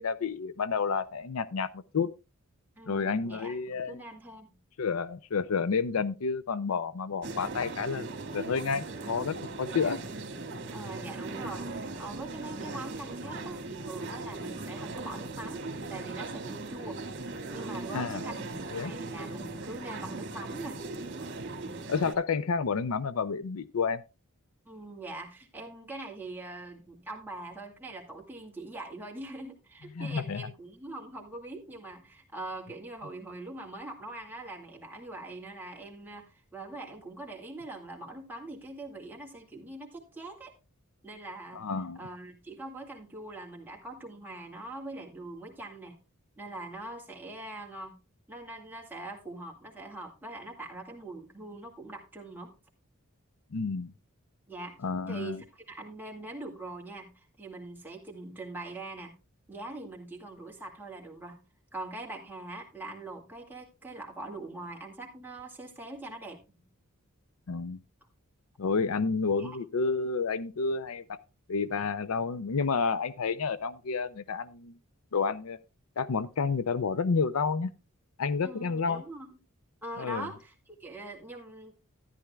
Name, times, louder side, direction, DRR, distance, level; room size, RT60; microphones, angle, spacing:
voice 1, 0.0-2.1 2.9-4.0 4.8-10.0 17.9-18.2 18.7-19.0 21.9-24.0 30.0-30.5 41.6-42.0 53.5-53.9 54.8-55.4 67.5-67.8 68.6-71.2 71.5-74.7 75.1-75.6 76.0-77.7 78.2-79.0 80.0-80.3, left 5 dB, 75° left, 0.5 m, -30 dB
voice 2, 2.8-4.6 9.6-10.0 10.7-15.6 15.9-17.0 17.5-20.8 24.6-40.5 41.0-41.6 42.0-46.0 46.4-48.0 48.3-52.5 54.5-59.1 59.5-61.4 61.7-66.6 69.4-69.6 78.4-79.4 79.8-81.7, right 2 dB, 10° right, 2.1 m, -43 dB
sound 1, 7.2-22.1, right 3 dB, 55° right, 1.9 m, -39 dB
13.5 x 11.0 x 2.3 m
head